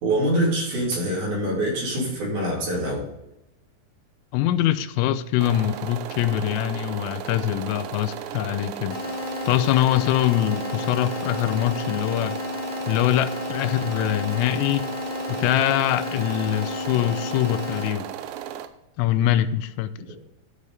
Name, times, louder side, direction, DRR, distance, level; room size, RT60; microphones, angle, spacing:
voice 1, 0.0-3.1, right 1 dB, 50° right, 4.5 m, -24 dB
voice 2, 4.3-9.0 9.5-12.4 12.9-14.9 15.3-18.1 19.0-19.9, left 12 dB, 85° left, 3.2 m, -23 dB
sound 1, 5.4-18.7, right 10 dB, 80° right, 2.9 m, -35 dB
sound 2, 8.9-17.9, left 4 dB, 65° left, 2.8 m, -32 dB
13.5 x 5.4 x 4.9 m
omnidirectional pair, 5.9 m